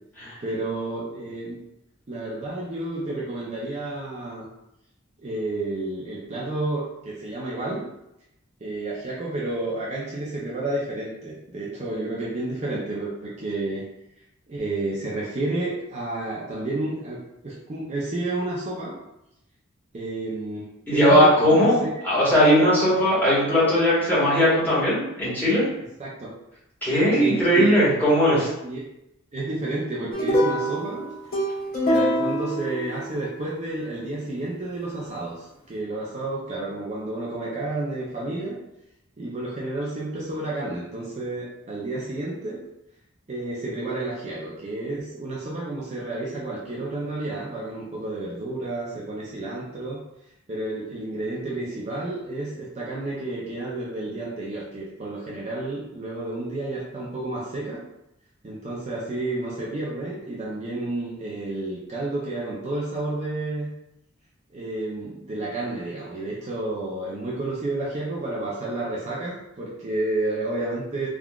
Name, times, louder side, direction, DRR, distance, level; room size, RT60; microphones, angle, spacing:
voice 1, 0.4-1.6 2.1-4.5 5.2-7.8 8.6-13.8 14.5-19.0 19.9-21.9 26.0-26.3 27.1-27.8 28.6-28.8 29.3-31.1 31.8-38.6 39.2-42.6 43.3-50.0 50.5-57.8 58.4-63.7 64.5-71.1, right 2 dB, 35° right, -6 dB, 0.5 m, -31 dB
voice 2, 20.9-25.7 26.8-28.5, equal, 10° left, -11 dB, 1.3 m, -19 dB
sound 1, 30.1-33.5, equal, 50° left, 1.4 m, -25 dB
3.6 x 2.3 x 2.3 m, 0.86 s
head